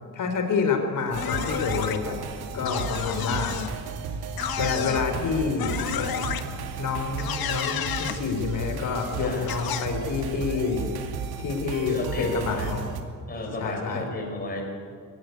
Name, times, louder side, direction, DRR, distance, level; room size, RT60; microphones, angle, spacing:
voice 1, 0.1-2.2 2.5-3.6 4.6-6.1 6.8-10.9 11.4-12.8 13.6-14.0, left 5 dB, 55° left, 5 dB, 3.9 m, -28 dB
sound 1, 1.1-2.0 2.6-3.7 4.4-5.0 5.6-6.4 7.2-8.2 9.5-9.9, left 9 dB, 70° left, 1.6 m, -30 dB
sound 2, 1.1-13.0, right 6 dB, 85° right, 2.4 m, -34 dB
voice 2, 11.9-12.7 13.3-14.6, left 2 dB, 25° left, 0 dB, 4.6 m, -32 dB
23.0 x 16.0 x 9.7 m, 2.2 s
cardioid pair, 145°, 37 cm